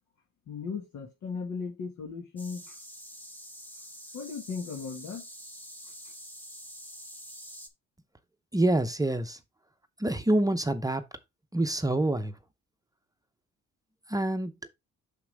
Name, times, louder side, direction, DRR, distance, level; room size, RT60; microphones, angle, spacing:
voice 1, 0.5-2.8 4.1-5.2, left 5 dB, 75° left, 1.7 m, -37 dB
sound 1, 2.4-7.7, equal, 5° left, 1.3 m, -46 dB
voice 2, 8.5-9.4 10.0-11.0 11.5-12.3 14.1-14.5, right 1 dB, 10° right, 0.7 m, -26 dB
6.0 x 5.9 x 3.4 m
cardioid pair, 90°, 30 cm